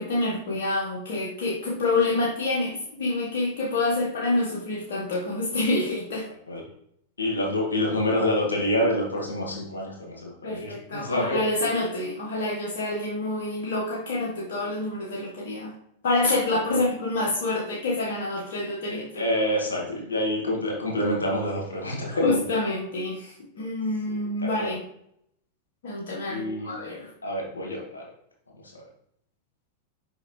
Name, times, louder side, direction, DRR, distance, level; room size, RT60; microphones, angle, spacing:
voice 1, 0.0-6.3 10.4-15.7 16.0-19.2 22.2-24.8 25.8-27.1, left 2 dB, 70° left, -4 dB, 1.4 m, -27 dB
voice 2, 7.2-11.7 16.7-16.8 18.9-22.4 24.4-24.7 26.3-26.7 27.2-28.0, left 1 dB, 90° left, -1 dB, 2.0 m, -27 dB
6.4 x 5.3 x 3.2 m, 0.71 s
hypercardioid pair, 100°, 0 cm